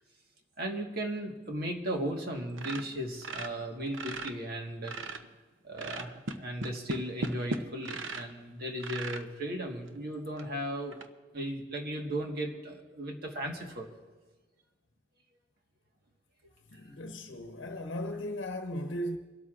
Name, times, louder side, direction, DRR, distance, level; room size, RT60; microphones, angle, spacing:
voice 1, 0.6-5.1 5.6-11.0 11.3-13.9 16.7-16.8, right 1 dB, 50° right, 1.6 m, -36 dB
sound 1, 2.5-4.4 4.7-5.3 5.8-8.3 8.8-9.3 9.9-10.0 10.4-10.5 10.9-11.1, right 3 dB, 80° right, 0.8 m, -37 dB
voice 2, 16.7-19.2, equal, 70° left, 0.9 m, -37 dB
28.0 x 12.5 x 2.5 m
head